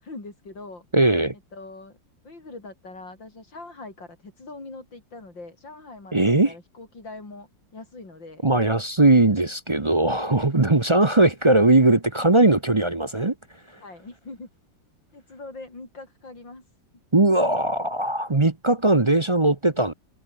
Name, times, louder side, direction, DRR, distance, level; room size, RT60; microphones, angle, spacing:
voice 1, 0.0-0.9 1.5-2.0 2.2-8.5 13.8-14.5 15.1-16.7, left 3 dB, 75° left, 7.0 m, -42 dB
voice 2, 0.9-1.3 6.1-6.5 8.4-13.3 17.1-19.9, right 2 dB, 25° right, 0.7 m, -19 dB
omnidirectional pair, 2.0 m